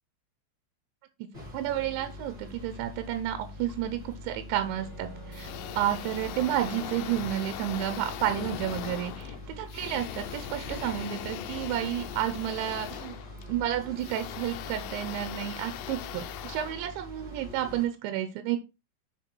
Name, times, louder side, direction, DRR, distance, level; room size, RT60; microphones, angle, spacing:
sound 1, 1.3-17.9, left 1 dB, 15° right, 3.1 m, -45 dB
voice 1, 1.5-5.5 5.8-13.1 13.5-18.6, right 12 dB, 80° right, 9 dB, 3.1 m, -31 dB
sound 2, 4.6-6.9, right 2 dB, ahead, 4.1 m, -47 dB
sound 3, 5.3-17.5, left 12 dB, 80° left, 2.5 m, -40 dB
6.7 x 6.3 x 4.6 m, 0.28 s
omnidirectional pair, 5.4 m